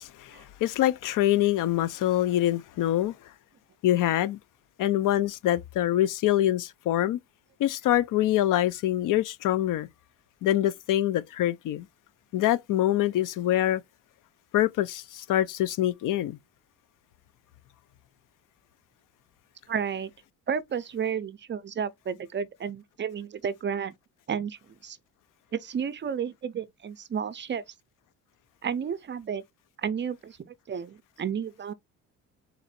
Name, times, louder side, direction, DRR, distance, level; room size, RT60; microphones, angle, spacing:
voice 1, 0.0-3.1 3.8-4.4 4.8-7.2 7.6-9.9 10.4-11.9 12.3-13.8 14.5-16.4, left 13 dB, 65° left, 0.5 m, -25 dB
voice 2, 19.7-20.1 20.5-23.9 24.3-25.0 25.5-27.6 28.6-29.4 29.8-31.7, right 7 dB, 30° right, 0.5 m, -32 dB
4.1 x 2.5 x 4.2 m
cardioid pair, 95°, 35 cm